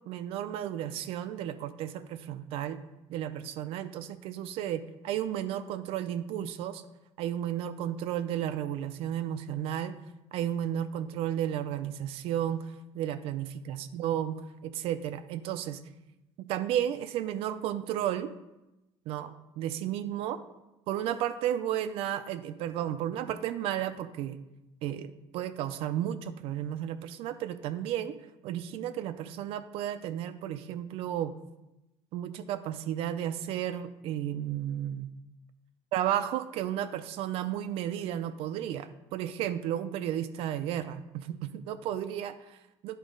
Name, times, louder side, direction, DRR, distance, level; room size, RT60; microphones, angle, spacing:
voice 1, 0.1-2.8 3.1-6.8 7.2-10.0 10.3-15.8 16.4-18.3 19.1-20.4 20.9-24.4 24.8-28.2 28.4-31.3 32.1-35.1 35.9-43.0, right 11 dB, 65° right, 11 dB, 0.4 m, -33 dB
10.0 x 4.0 x 5.2 m, 0.97 s
cardioid pair, 170°, 11 cm